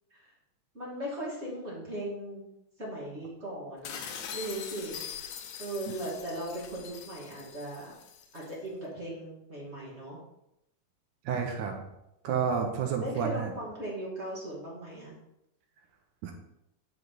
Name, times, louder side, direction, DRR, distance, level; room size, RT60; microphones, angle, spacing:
voice 1, 0.7-2.4 2.8-5.0 5.6-7.9 8.3-10.2 12.9-15.1, right 1 dB, 25° right, -6 dB, 2.1 m, -38 dB
sound 1, 3.8-8.5, left 8 dB, 70° left, 1.7 m, -42 dB
voice 2, 11.3-11.7 12.2-13.5 16.2-16.3, right 7 dB, 75° right, 3 dB, 2.2 m, -30 dB
9.3 x 5.0 x 3.8 m, 0.85 s
omnidirectional pair, 3.8 m